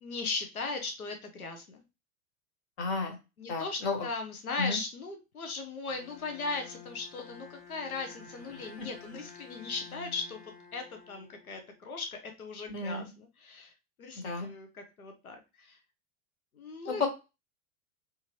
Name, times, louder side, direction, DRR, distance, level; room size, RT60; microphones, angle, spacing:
voice 1, 0.0-1.8 3.4-13.7 14.0-15.8 16.5-17.1, left 4 dB, 85° left, 5 dB, 0.8 m, -38 dB
voice 2, 2.8-3.2 3.5-4.0 4.6-4.8 8.8-8.9 12.7-13.1 14.2-14.5 16.9-17.1, left 4 dB, 50° left, 4 dB, 1.4 m, -32 dB
Bowed string instrument, 5.9-11.8, left 4 dB, 20° left, 1.2 m, -51 dB
3.5 x 3.0 x 2.9 m, 0.27 s
figure-of-eight pair, 85°, 42 cm